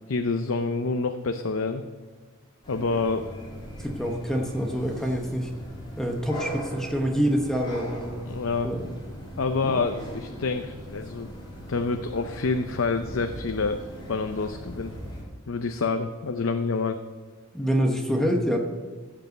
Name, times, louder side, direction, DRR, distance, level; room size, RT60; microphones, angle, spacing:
voice 1, 0.1-1.8 2.7-3.3 8.3-8.7 9.4-11.3 11.7-13.8 14.1-14.9 15.5-17.0, left 4 dB, 70° left, 8 dB, 0.6 m, -27 dB
sound 1, 2.6-15.2, equal, 20° left, 2.8 m, -40 dB
voice 2, 3.8-5.5 6.0-8.2 8.6-8.9 9.6-9.8 17.5-18.6, equal, ahead, 1 dB, 1.0 m, -26 dB
15.5 x 5.4 x 7.8 m, 1.4 s
head